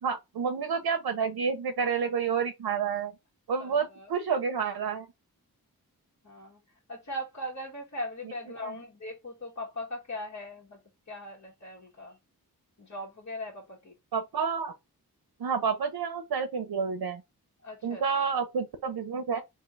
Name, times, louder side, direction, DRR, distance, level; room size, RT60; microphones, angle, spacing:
voice 1, 0.0-3.1 3.5-5.1 8.6-8.7 14.1-14.7 15.4-17.2 17.8-19.4, right 6 dB, 80° right, 0.7 m, -29 dB
voice 2, 3.6-4.1 6.2-6.6 6.9-10.8 11.1-12.2 12.8-13.9 17.6-18.0, left 1 dB, 45° left, 1.6 m, -39 dB
3.6 x 2.9 x 3.2 m
cardioid pair, 50°, 37 cm